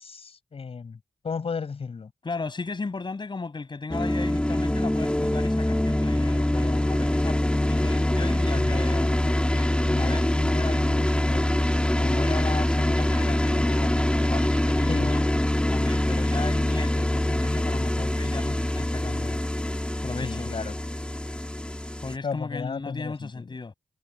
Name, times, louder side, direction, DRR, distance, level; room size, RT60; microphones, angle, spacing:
voice 1, 0.0-2.1 8.6-8.8 14.9-15.1 20.2-20.8 22.2-23.5, left 5 dB, 60° left, 7.4 m, -34 dB
voice 2, 2.2-11.5 12.0-15.3 15.7-19.4 20.0-20.5 22.0-23.7, left 4 dB, 45° left, 6.0 m, -35 dB
sound 1, 3.9-22.2, left 1 dB, 10° left, 2.5 m, -24 dB
cardioid pair, 50°, 11 cm